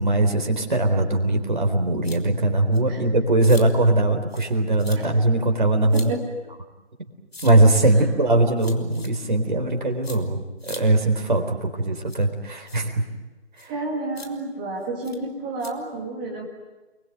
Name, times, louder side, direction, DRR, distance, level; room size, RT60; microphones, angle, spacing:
voice 1, 0.0-6.1 7.4-10.4 10.6-13.0, right 2 dB, 45° right, 4 dB, 3.9 m, -20 dB
sound 1, 2.0-2.2 2.7-2.8 3.4-3.6 4.3-4.5 4.8-5.0 5.9-6.1 7.3-7.5 8.6-9.1 10.0-10.2 10.6-10.8 12.1-12.2 12.7-12.8 13.6-13.7 14.2-14.3 15.0-15.2 15.6-15.7, left 2 dB, 60° left, 3.6 m, -40 dB
voice 2, 5.9-6.2 7.9-8.0 13.7-16.5, right 2 dB, 5° right, -1 dB, 1.6 m, -30 dB
30.0 x 22.0 x 9.2 m, 1.2 s
figure-of-eight pair, 160°, 34 cm